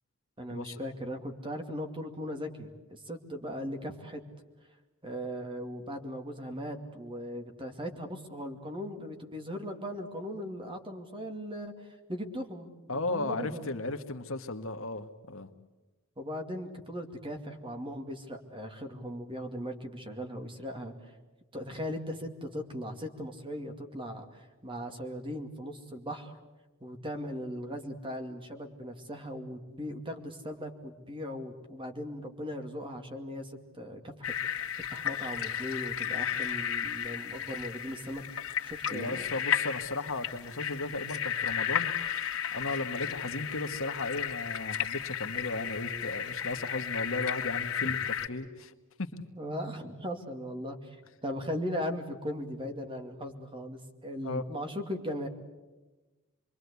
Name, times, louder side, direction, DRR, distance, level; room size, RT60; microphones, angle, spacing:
voice 1, 0.4-4.2 5.0-11.7 12.1-12.7 13.1-13.7 16.2-21.1 21.5-26.4 26.8-34.7 34.9-38.2 38.6-39.3 47.8-47.9 49.3-50.8 51.2-55.3, equal, 25° right, 5 dB, 2.4 m, -38 dB
voice 2, 12.9-15.5 38.8-41.9 42.5-48.0 48.3-48.7 49.0-49.2 54.2-54.4, left 2 dB, 70° left, 7 dB, 1.5 m, -35 dB
sound 1, 34.2-48.3, left 9 dB, 85° left, 2.1 m, -34 dB
26.5 x 22.5 x 8.3 m, 1.1 s
head